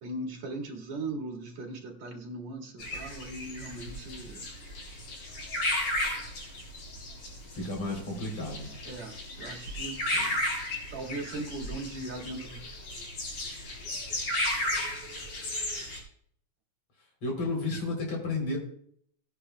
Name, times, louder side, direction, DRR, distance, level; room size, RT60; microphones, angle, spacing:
voice 1, 0.0-4.5 8.8-10.1 10.9-12.7 13.0-13.1, right 2 dB, 65° right, -1 dB, 3.3 m, -39 dB
sound 1, 2.8-16.0, left 1 dB, 85° left, 5.4 m, -34 dB
voice 2, 7.5-8.7 10.1-10.3 17.2-18.6, left 2 dB, 45° left, -1 dB, 4.4 m, -32 dB
18.5 x 10.0 x 2.3 m, 0.63 s
omnidirectional pair, 3.5 m